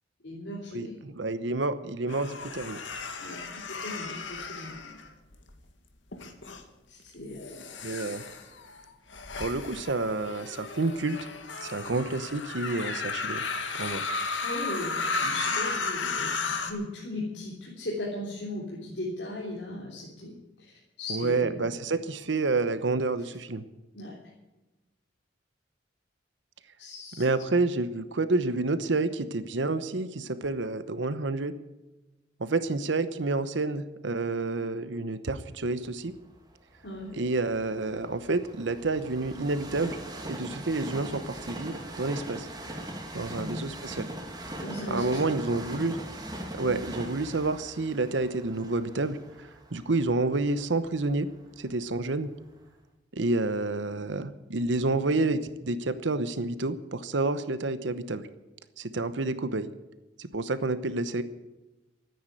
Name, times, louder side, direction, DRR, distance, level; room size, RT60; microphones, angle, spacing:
voice 1, 0.2-1.0 3.2-4.9 6.9-7.9 12.7-12.8 14.4-20.3 21.0-21.9 23.9-24.2 26.8-27.3 36.8-37.1 43.4-43.6 44.6-45.2 45.5-45.6, left 1 dB, 70° left, -4 dB, 3.4 m, -38 dB
voice 2, 0.7-2.8 7.8-8.2 9.4-11.2 11.6-13.4 13.7-14.0 21.1-23.6 27.2-31.5 32.4-36.1 37.1-40.0 40.3-42.5 43.1-44.1 44.9-46.0 46.5-51.3 51.6-52.3 53.1-58.3 58.8-59.7 60.2-61.2, right 3 dB, 75° right, 13 dB, 0.9 m, -29 dB
sound 1, 2.1-5.5 6.1-6.6 7.3-16.7, left 4 dB, 85° left, 2.0 m, -34 dB
Train, 36.0-52.0 52.5-52.6, right 1 dB, 20° right, 2.3 m, -41 dB
14.0 x 9.5 x 9.2 m, 1.0 s
head